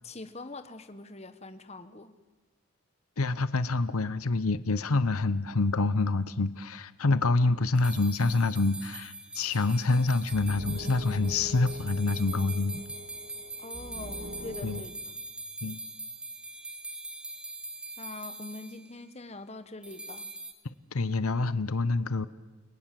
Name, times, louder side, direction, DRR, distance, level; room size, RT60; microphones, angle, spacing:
voice 1, 0.0-2.2 13.6-14.9 18.0-20.3, left 2 dB, 30° left, 10 dB, 1.3 m, -43 dB
voice 2, 3.2-12.8 14.6-14.8 15.6-15.8 20.9-22.3, left 3 dB, 85° left, 14 dB, 0.9 m, -27 dB
sound 1, 7.7-18.8 19.8-20.5, right 2 dB, 5° right, 1.7 m, -42 dB
sound 2, 9.4-14.8, left 1 dB, 60° right, 2.2 m, -44 dB
29.5 x 22.0 x 7.7 m, 1.3 s
head